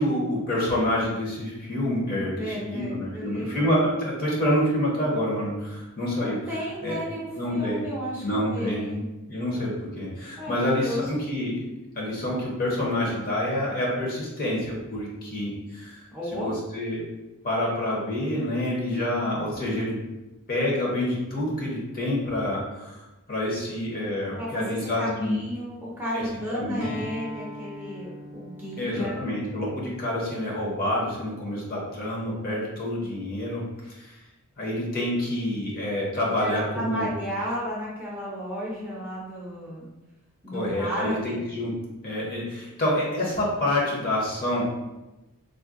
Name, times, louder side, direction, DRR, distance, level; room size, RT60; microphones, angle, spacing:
voice 1, 0.0-6.4 6.8-7.0 7.3-7.8 8.2-8.9 9.2-11.7 12.0-16.0 16.4-17.0 17.4-19.9 20.5-23.0 23.3-25.4 26.1-26.9 28.8-34.2 34.6-37.1 40.5-41.7 42.0-44.6, left 1 dB, 40° left, -4 dB, 0.8 m, -27 dB
voice 2, 2.4-3.7 6.2-8.2 8.5-9.1 10.4-11.0 16.1-16.5 24.3-29.2 36.2-39.8 40.4-41.4, equal, 10° right, -7 dB, 0.6 m, -33 dB
Acoustic guitar, 26.8-32.0, left 1 dB, 85° left, 0.9 m, -44 dB
3.6 x 2.1 x 2.5 m, 1.0 s
head